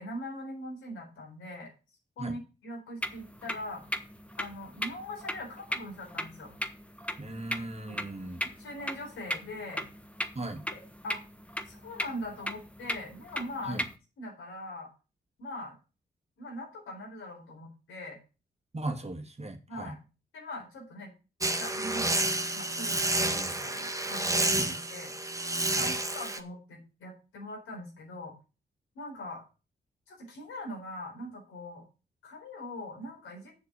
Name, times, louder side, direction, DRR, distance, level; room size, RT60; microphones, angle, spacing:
voice 1, 0.0-1.7 2.2-3.8 4.4-6.5 7.9-8.1 8.4-9.8 10.7-11.2 11.7-13.8 14.2-14.9 15.4-15.7 16.4-18.2 19.7-20.0 20.3-21.1 21.6-24.6 24.9-25.1 25.7-28.3 28.9-29.4 30.1-31.9 32.2-33.5, left 1 dB, 85° left, 4.4 m, -41 dB
sound 1, 3.0-13.9, equal, 5° left, 1.3 m, -38 dB
voice 2, 7.2-8.4 10.3-10.6 13.7-13.8 18.7-20.0 23.2-23.5 24.6-24.8 25.8-26.0, right 2 dB, 30° right, 2.2 m, -38 dB
sound 2, 21.4-26.4, right 2 dB, 15° right, 1.5 m, -30 dB
7.4 x 6.9 x 6.9 m
supercardioid pair, 40°, 20 cm